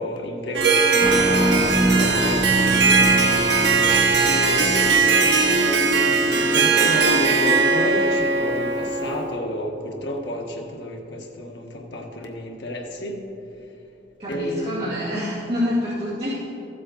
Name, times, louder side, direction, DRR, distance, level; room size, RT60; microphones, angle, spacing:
voice 1, 0.0-1.5 2.0-3.4 4.2-13.3 14.3-14.7 15.0-15.1, left 1 dB, 70° left, 1 dB, 1.4 m, -30 dB
Harp, 0.6-9.3, right 4 dB, 70° right, 0.9 m, -19 dB
sound 1, 1.0-6.5, right 1 dB, 5° left, 0.4 m, -25 dB
voice 2, 14.2-16.5, left 1 dB, 30° right, -12 dB, 2.3 m, -27 dB
14.5 x 7.8 x 3.9 m, 2.9 s
head